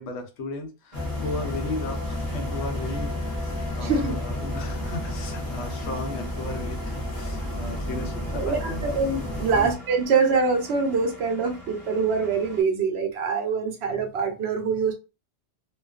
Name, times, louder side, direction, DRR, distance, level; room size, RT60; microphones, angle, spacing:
voice 1, 0.0-9.0 9.5-9.8, left 2 dB, 70° left, 0.9 m, -36 dB
sound 1, 0.9-9.8, left 1 dB, 25° left, 0.6 m, -31 dB
Engine, 0.9-12.6, right 2 dB, 35° right, 0.8 m, -45 dB
voice 2, 3.8-4.2 8.3-14.9, right 5 dB, 70° right, 0.8 m, -24 dB
2.4 x 2.3 x 2.3 m
omnidirectional pair, 1.2 m